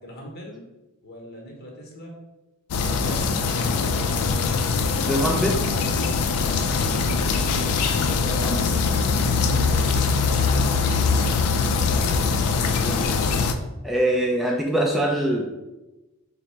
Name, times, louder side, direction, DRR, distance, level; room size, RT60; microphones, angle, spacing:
voice 1, 0.0-0.7 1.0-2.1 2.8-4.3 8.1-9.8, equal, 45° left, -1 dB, 0.9 m, -40 dB
sound 1, 2.7-13.5, left 4 dB, 75° left, 0.3 m, -22 dB
voice 2, 5.1-5.6 8.4-8.6 10.8-10.9 12.6-13.3 13.8-15.4, right 1 dB, ahead, -2 dB, 0.3 m, -24 dB
3.8 x 2.0 x 4.3 m, 1.0 s
head